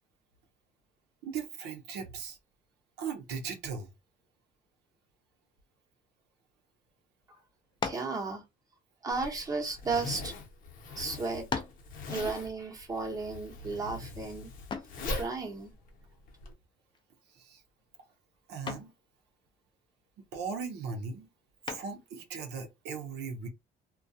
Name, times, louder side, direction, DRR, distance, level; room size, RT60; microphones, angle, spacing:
voice 1, 1.2-2.4 3.0-3.9 17.3-17.6 18.5-18.9 20.3-21.3 21.7-23.5, right 5 dB, 80° right, 0.7 m, -38 dB
sound 1, 7.8-8.2 9.1-10.3 11.0-11.1 11.5-11.9 14.7-15.0 16.9-17.3 17.7-18.0 18.7-19.0 21.6-22.1, left 5 dB, 30° left, 0.5 m, -37 dB
voice 2, 7.8-8.4 9.0-10.3 10.9-11.4 12.1-14.5 15.1-15.7, right 4 dB, 20° right, 0.8 m, -34 dB
Zipper (clothing), 9.1-16.5, left 3 dB, 55° left, 0.9 m, -41 dB
2.3 x 2.2 x 2.6 m
cardioid pair, 110°, 17 cm